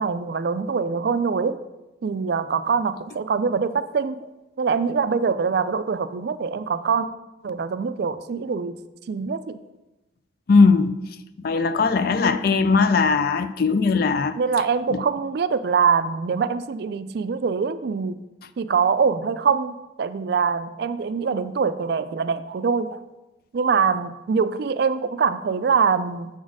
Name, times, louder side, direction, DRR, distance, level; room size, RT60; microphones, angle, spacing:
voice 1, 0.0-1.6 2.0-4.3 4.6-7.1 7.4-8.8 9.1-9.6 14.4-18.1 18.6-23.0 23.5-26.3, right 5 dB, 55° right, 0.3 m, -23 dB
voice 2, 10.5-11.0 11.4-14.3 14.9-15.0, left 4 dB, 50° left, 0.4 m, -19 dB
6.9 x 4.0 x 6.2 m
head